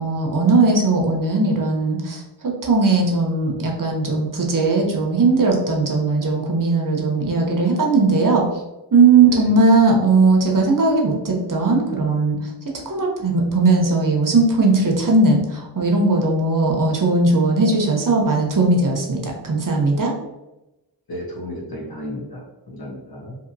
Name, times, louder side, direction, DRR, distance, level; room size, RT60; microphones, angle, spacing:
voice 1, 0.0-8.4 8.9-12.4 12.9-20.1, right 3 dB, 55° right, 0 dB, 0.7 m, -18 dB
voice 2, 21.1-22.4 22.7-23.4, left 1 dB, 65° left, -3 dB, 1.0 m, -33 dB
2.8 x 2.8 x 2.6 m, 0.97 s
wide cardioid pair, 70°, 40 cm